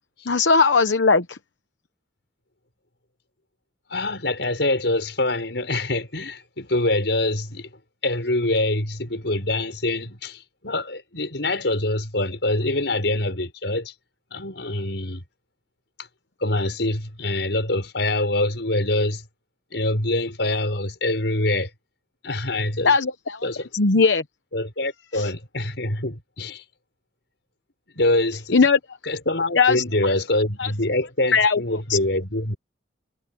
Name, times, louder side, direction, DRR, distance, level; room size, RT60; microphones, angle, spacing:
voice 1, 0.3-1.4 22.8-23.5 23.7-24.2 25.1-25.3 28.5-28.8 29.6-30.1 30.6-30.7 31.3-31.6 31.9-32.0, left 4 dB, 90° left, 0.9 m, -19 dB
voice 2, 3.9-7.7 8.0-13.9 14.3-15.2 16.4-19.2 19.7-21.7 22.2-22.9 23.4-23.7 24.5-26.6 27.9-28.7 29.0-32.6, left 2 dB, 70° left, 6.2 m, -25 dB
head